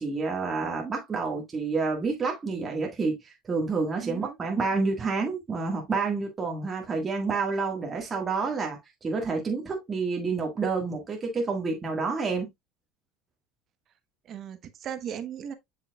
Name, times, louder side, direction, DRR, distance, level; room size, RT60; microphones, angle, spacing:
voice 1, 0.0-12.5, right 4 dB, 25° right, 1.7 m, -29 dB
voice 2, 4.0-4.4 14.2-15.5, right 9 dB, 45° right, 1.1 m, -37 dB
7.4 x 5.8 x 2.3 m
supercardioid pair, 115°, 0 cm